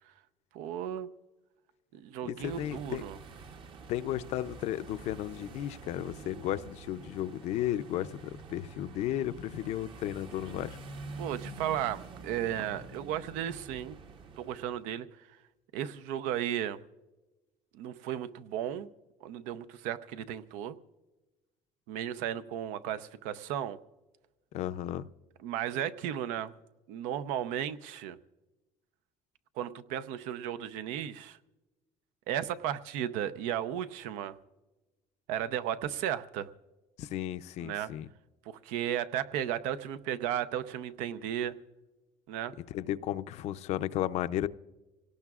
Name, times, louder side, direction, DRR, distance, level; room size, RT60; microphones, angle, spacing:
voice 1, 0.5-1.1 1.9-3.2 11.2-14.0 14.4-15.1 15.7-16.8 17.7-18.9 19.2-20.8 21.9-23.8 25.4-26.5 26.9-28.2 29.6-31.4 32.3-34.4 35.3-36.5 37.6-37.9 38.5-41.6 42.3-42.5, right 10 dB, 85° right, 12 dB, 0.7 m, -34 dB
voice 2, 2.2-3.0 3.9-10.8 24.5-25.1 37.0-38.1 42.7-44.5, left 12 dB, 60° left, 13 dB, 0.5 m, -34 dB
sound 1, 2.4-14.8, right 3 dB, 45° right, 0.9 m, -47 dB
25.5 x 18.0 x 2.4 m, 1.1 s
cardioid pair, 135°, 13 cm